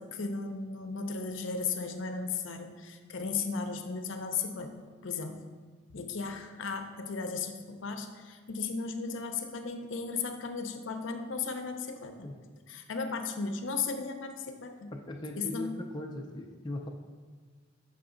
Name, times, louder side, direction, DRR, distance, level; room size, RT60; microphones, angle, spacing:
voice 1, 0.0-5.4 5.9-12.3 12.7-14.9 15.4-15.8, left 5 dB, 65° left, 6 dB, 0.6 m, -36 dB
voice 2, 14.9-16.9, left 1 dB, 20° left, 1 dB, 0.4 m, -39 dB
6.9 x 5.5 x 3.8 m, 1.5 s
head